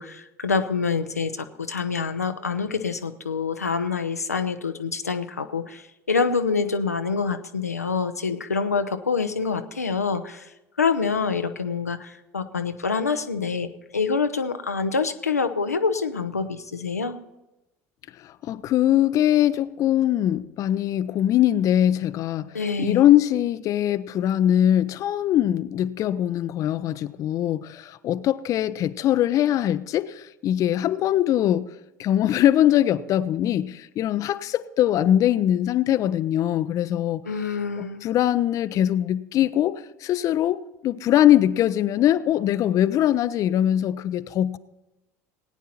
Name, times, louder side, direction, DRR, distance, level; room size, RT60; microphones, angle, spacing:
voice 1, 0.0-10.5 10.8-17.2 22.5-23.1 37.3-38.1, left 5 dB, 90° left, 0.6 m, -26 dB
voice 2, 18.2-31.7 32.0-37.2 37.8-44.6, left 11 dB, 45° left, 0.5 m, -22 dB
17.5 x 9.2 x 4.3 m
figure-of-eight pair, 70°, 8 cm